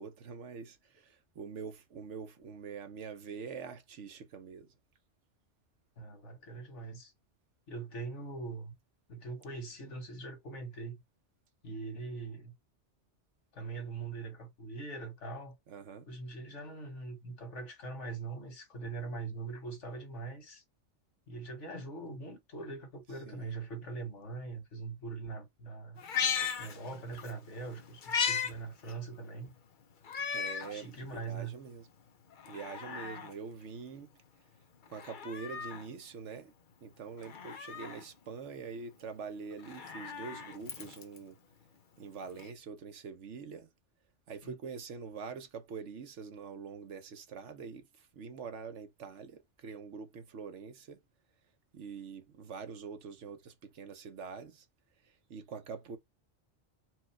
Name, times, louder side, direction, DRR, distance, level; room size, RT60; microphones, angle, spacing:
voice 1, 0.0-4.7 15.7-16.1 23.2-23.5 30.3-31.8 32.5-34.1 34.9-36.5 36.8-41.4 42.0-43.7 44.3-51.0 51.7-54.6 55.3-56.0, right 5 dB, 80° right, 1.2 m, -44 dB
voice 2, 6.0-7.1 7.7-8.7 9.1-11.0 11.6-12.6 13.5-15.6 16.1-20.6 21.3-26.0 26.6-29.5 30.7-31.6 44.4-44.6, right 3 dB, 80° left, 1.8 m, -42 dB
Meow, 26.0-27.3 27.7-28.5 28.9-29.0 30.0-30.7 31.2-31.3 32.3-33.3 34.9-35.9 37.2-38.0 39.5-41.2 42.4-42.5, left 7 dB, 50° left, 0.9 m, -36 dB
4.6 x 2.4 x 4.4 m
omnidirectional pair, 1.2 m